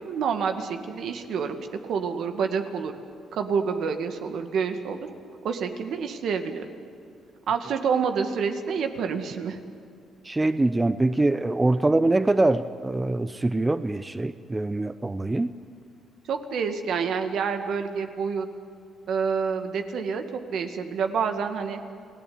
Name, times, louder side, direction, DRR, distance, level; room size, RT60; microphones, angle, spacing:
voice 1, 0.0-2.9 3.3-5.0 5.4-6.7 7.5-9.6 16.3-18.5 19.1-21.8, right 6 dB, 70° right, 7 dB, 2.1 m, -28 dB
voice 2, 10.2-15.5, right 2 dB, 15° right, 13 dB, 0.7 m, -24 dB
30.0 x 18.0 x 9.6 m, 2.2 s
cardioid pair, 90°, 0 cm